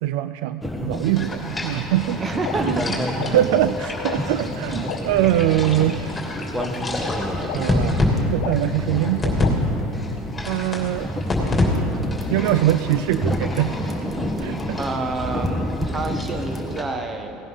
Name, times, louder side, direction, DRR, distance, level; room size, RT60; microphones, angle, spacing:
voice 1, 0.0-2.2 2.6-2.8 3.2-6.2 7.4-9.6 10.4-11.1 12.3-13.8 14.4-14.8, right 13 dB, 75° right, 12 dB, 0.3 m, -23 dB
sound 1, 0.6-16.8, equal, 5° right, 1.4 m, -29 dB
sound 2, 0.9-9.5 9.8-11.7 12.0-16.8, left 2 dB, 15° left, 2.9 m, -29 dB
voice 2, 2.2-2.7 3.3-3.4 14.8-17.4, right 3 dB, 30° right, 6 dB, 1.3 m, -28 dB
sound 3, 2.4-2.5 3.2-3.3 4.1-4.2 4.9-5.0 5.8-5.9 6.6-6.7 7.5-7.6 8.4-8.5 9.4-9.5, left 16 dB, 75° left, 0.7 m, -30 dB
17.5 x 10.5 x 4.0 m, 2.8 s
supercardioid pair, 100°, 0 cm